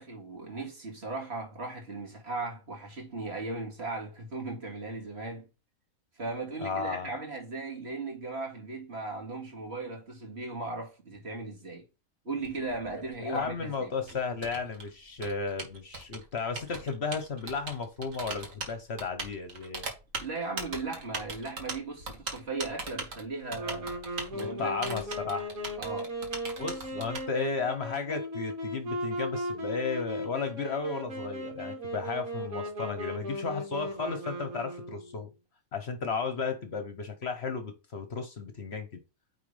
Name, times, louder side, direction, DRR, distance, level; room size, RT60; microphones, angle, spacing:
voice 1, 0.0-5.5 6.2-11.8 12.2-13.9 20.2-24.0 24.3-25.0 25.8-26.1, right 3 dB, 50° right, 2.3 m, -37 dB
voice 2, 6.6-7.1 13.2-19.8 24.3-25.5 26.6-35.3 35.7-38.9, left 4 dB, 55° left, 1.1 m, -34 dB
Typing, 12.4-27.2, right 3 dB, 70° right, 1.9 m, -40 dB
Wind instrument woodwind instrument, 23.5-35.2, equal, 85° right, 2.4 m, -37 dB
9.1 x 4.0 x 3.3 m
omnidirectional pair, 1.4 m